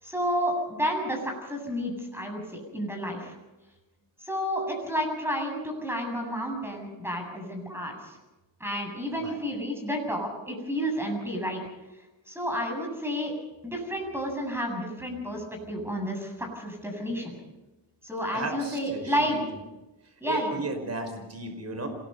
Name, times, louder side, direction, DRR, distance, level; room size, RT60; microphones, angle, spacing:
voice 1, 0.0-3.3 4.2-8.2 8.6-11.6 12.3-13.3 13.6-17.3 18.0-19.4 20.2-20.6, equal, 5° right, 2 dB, 7.8 m, -31 dB
voice 2, 18.3-19.4 20.2-21.9, right 2 dB, 35° right, 6 dB, 5.2 m, -35 dB
26.5 x 20.5 x 5.5 m, 1.0 s
cardioid pair, 110°, 44 cm